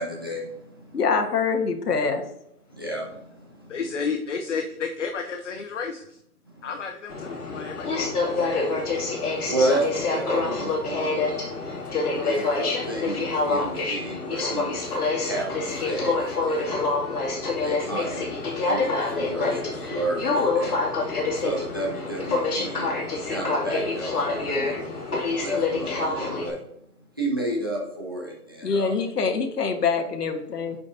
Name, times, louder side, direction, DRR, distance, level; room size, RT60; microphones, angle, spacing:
voice 1, 0.0-1.0 2.7-3.8 6.5-6.7 7.7-7.8 8.4-8.5 9.0-11.4 12.2-17.0 17.6-24.9 25.4-26.6 27.2-28.9, right 1 dB, 15° right, -3 dB, 0.6 m, -32 dB
voice 2, 0.9-2.2 28.6-30.8, left 5 dB, 90° left, 5 dB, 1.4 m, -24 dB
voice 3, 3.7-6.2 6.6-8.0 8.3-8.9, left 5 dB, 50° left, 5 dB, 0.7 m, -32 dB
Aircraft, 7.1-26.5, left 3 dB, 70° left, 2.5 m, -27 dB
8.7 x 5.2 x 2.6 m, 0.77 s
hypercardioid pair, 170°, 46 cm